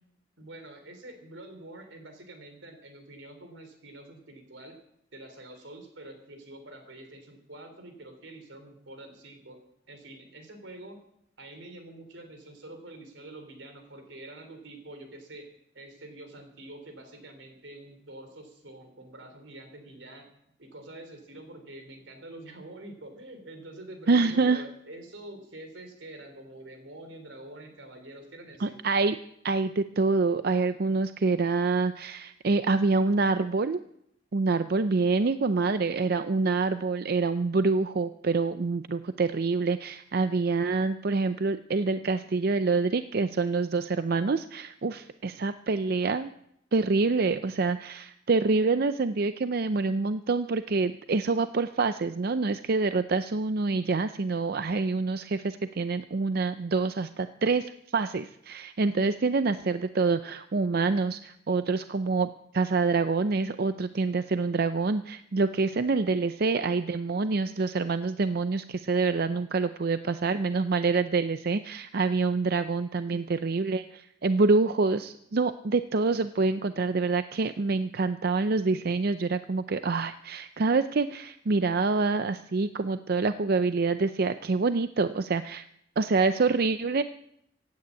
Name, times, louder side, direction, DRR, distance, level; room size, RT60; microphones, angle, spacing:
voice 1, 0.4-4.8 5.1-9.6 9.9-11.0 11.4-15.5 15.7-20.3 20.6-28.8 73.1-73.4, right 1 dB, 85° right, 6 dB, 3.6 m, -46 dB
voice 2, 24.1-24.6 28.6-29.2 29.4-33.8 34.3-46.3 46.7-85.6 86.0-87.0, right 3 dB, 55° right, 11 dB, 0.5 m, -26 dB
16.0 x 9.5 x 8.4 m, 0.75 s
head